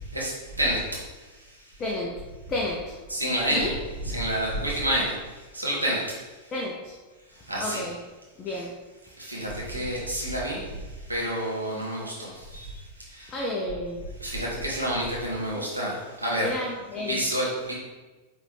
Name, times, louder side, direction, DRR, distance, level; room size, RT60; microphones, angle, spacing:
voice 1, 1.8-2.2 2.5-3.0 3.5-3.7 6.5-6.9 7.6-8.0 8.4-8.7 13.3-14.0 15.5-15.6 16.4-17.2, left 1 dB, 25° left, -1 dB, 0.6 m, -31 dB
voice 2, 3.1-3.7 4.0-5.1 5.5-6.0 7.5-7.8 9.3-10.6 11.1-12.7 14.2-16.5 16.9-17.7, right 1 dB, 85° right, -4 dB, 1.2 m, -28 dB
4.8 x 3.3 x 3.3 m, 1.2 s
figure-of-eight pair, 90°, 0 cm